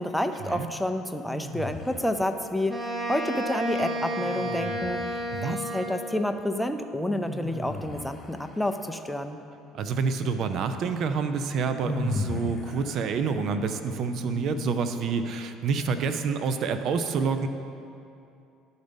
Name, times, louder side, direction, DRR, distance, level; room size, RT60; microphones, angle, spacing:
voice 1, 0.0-5.0 5.4-9.4, left 1 dB, ahead, 7 dB, 0.5 m, -29 dB
Human male huggin himself. Sounds of pleasure and delight., 1.3-2.4 4.2-5.3 7.1-9.0 10.9-11.0 11.8-15.1, left 2 dB, 25° left, 0.9 m, -36 dB
Wind instrument woodwind instrument, 2.7-6.2, right 1 dB, 15° right, 1.0 m, -32 dB
voice 2, 9.7-17.5, right 5 dB, 55° right, 9 dB, 0.5 m, -28 dB
11.5 x 4.0 x 5.2 m, 2.6 s
supercardioid pair, 105°, 0 cm